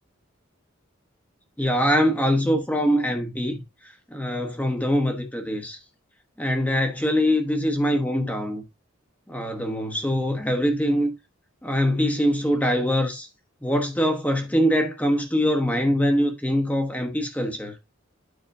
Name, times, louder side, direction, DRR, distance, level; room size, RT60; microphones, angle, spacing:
voice 1, 1.6-3.6 4.1-5.8 6.4-8.6 9.3-11.1 11.6-13.3 13.6-17.7, equal, 5° left, 1.1 m, -23 dB
9.3 x 5.4 x 2.7 m
head